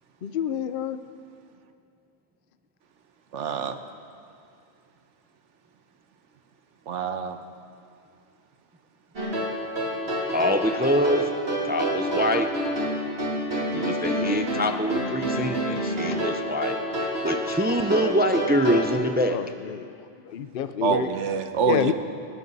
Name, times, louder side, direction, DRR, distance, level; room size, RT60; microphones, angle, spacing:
voice 1, 0.2-1.0 13.8-13.9 19.3-21.1 21.7-21.9, left 9 dB, 55° left, 11 dB, 0.8 m, -28 dB
voice 2, 3.3-3.8 6.9-7.4 20.8-21.9, right 6 dB, 85° right, 8 dB, 1.2 m, -26 dB
sound 1, 9.2-18.9, right 1 dB, 60° right, 3.0 m, -28 dB
voice 3, 10.3-11.3 11.6-12.5 13.7-19.4, equal, 10° right, 6 dB, 0.4 m, -25 dB
30.0 x 11.5 x 4.1 m, 2.4 s
omnidirectional pair, 1.2 m